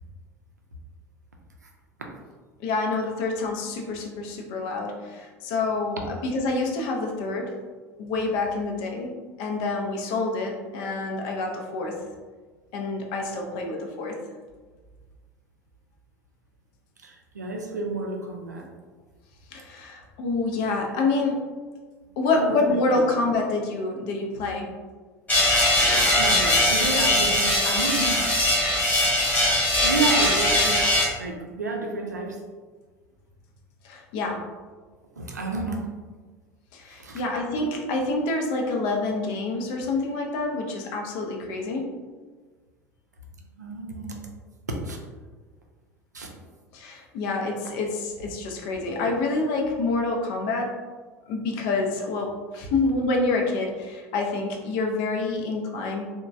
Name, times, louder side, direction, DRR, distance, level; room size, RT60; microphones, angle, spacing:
voice 1, 2.6-7.5 8.0-9.1 9.4-12.0 12.7-14.2 19.5-21.4 22.2-24.7 33.8-34.4 36.7-41.9 46.7-50.7 51.3-56.1, left 3 dB, 50° left, 1 dB, 0.5 m, -27 dB
voice 2, 17.0-18.7 22.3-22.6 26.2-28.2 28.7-28.9 29.4-30.9 31.2-32.4 35.2-35.9 37.0-37.2 43.6-44.2 44.8-45.0 46.1-46.3, right 3 dB, 80° right, 1 dB, 0.4 m, -30 dB
sound 1, 25.3-31.1, left 1 dB, 20° left, 1.0 m, -21 dB
2.9 x 2.1 x 2.5 m, 1.4 s
figure-of-eight pair, 70°, 9 cm